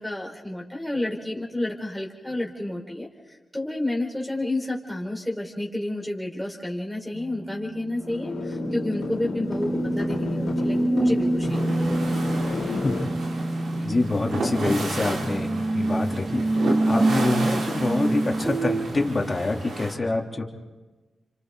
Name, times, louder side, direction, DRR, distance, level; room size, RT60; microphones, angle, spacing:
voice 1, 0.0-11.9 13.8-13.9, left 1 dB, ahead, -1 dB, 5.0 m, -30 dB
sound 1, 7.1-18.9, right 2 dB, 30° right, 1.8 m, -27 dB
sound 2, 8.0-13.0, left 4 dB, 85° left, 2.9 m, -32 dB
sound 3, 11.5-19.9, right 2 dB, 85° right, 3.6 m, -32 dB
voice 2, 13.8-20.4, left 2 dB, 35° left, 1 dB, 3.4 m, -26 dB
29.5 x 26.0 x 4.0 m, 1.2 s
cardioid pair, 55°, 0 cm